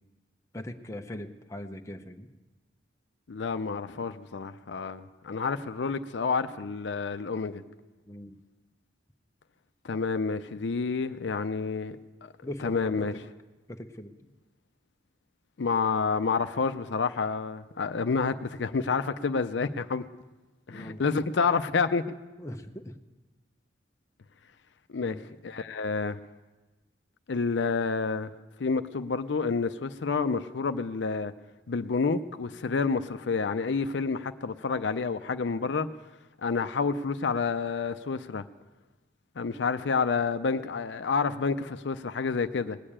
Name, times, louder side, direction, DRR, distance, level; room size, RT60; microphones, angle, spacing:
voice 1, 0.5-2.3 8.1-8.4 12.4-13.1 13.7-14.1 20.7-21.0 22.4-23.0 25.0-25.3, left 1 dB, 15° left, 0.8 m, -40 dB
voice 2, 3.3-7.6 9.8-12.0 12.2-12.3 12.6-13.1 15.6-20.0 20.7-22.0 24.9-25.2 25.4-26.2 27.3-28.3 28.6-31.3 31.7-35.9 36.4-38.4 39.4-42.8, left 4 dB, 75° left, 0.5 m, -29 dB
19.5 x 6.6 x 8.7 m
head